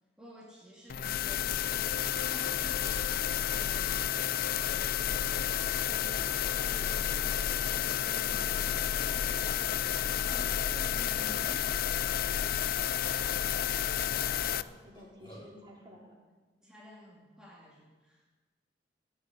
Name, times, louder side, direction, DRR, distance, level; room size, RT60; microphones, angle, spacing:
voice 1, 0.2-1.5 1.9-4.5 10.3-11.7 12.0-12.6 16.6-18.2, left 1 dB, 5° right, -6 dB, 2.2 m, -51 dB
sound 1, 0.9-14.6, left 10 dB, 55° left, 0.4 m, -31 dB
Burping eructation, 2.4-2.6 2.9-3.6 4.2-4.3 4.6-5.1 5.6-6.6 7.3-7.4 7.7-8.3 9.0-9.4 10.9-11.8 12.6-12.7 13.1-13.2 14.2-15.5, equal, 25° left, 4.2 m, -56 dB
voice 2, 5.8-10.5 13.2-14.1 14.5-16.2, equal, 25° right, -2 dB, 3.4 m, -53 dB
15.0 x 8.2 x 8.4 m, 1.3 s
head